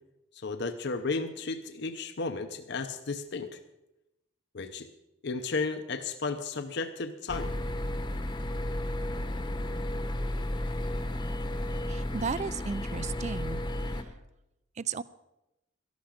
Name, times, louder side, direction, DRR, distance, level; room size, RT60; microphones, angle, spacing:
voice 1, 0.3-3.6 4.5-4.9 5.2-7.6, left 4 dB, 55° left, 8 dB, 0.7 m, -33 dB
sound 1, 7.3-14.0, left 1 dB, 25° left, 0.9 m, -33 dB
voice 2, 11.9-13.6 13.9-14.0 14.8-15.0, right 5 dB, 35° right, 18 dB, 0.4 m, -34 dB
13.0 x 11.5 x 5.1 m, 0.92 s
head